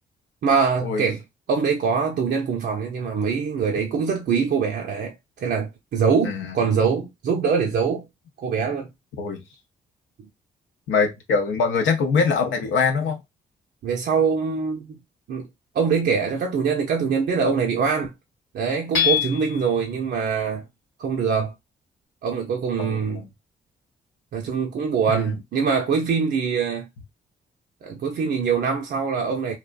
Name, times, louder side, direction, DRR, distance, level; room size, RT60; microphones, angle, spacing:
voice 1, 0.4-1.2 1.5-8.1 8.4-8.9 13.8-15.0 15.3-15.5 15.7-18.1 18.5-20.6 21.0-21.5 22.2-23.2 24.3-26.9 27.8-29.6, right 5 dB, 55° right, 0.5 m, -23 dB
voice 2, 6.2-6.7 9.2-9.4 10.9-13.2 22.8-23.3 25.1-25.3, left 5 dB, 70° left, 0.5 m, -23 dB
Hammer / Chink clink, 18.9-19.7, left 10 dB, 90° left, 0.9 m, -23 dB
2.5 x 2.1 x 2.4 m
hypercardioid pair, 45°, 20 cm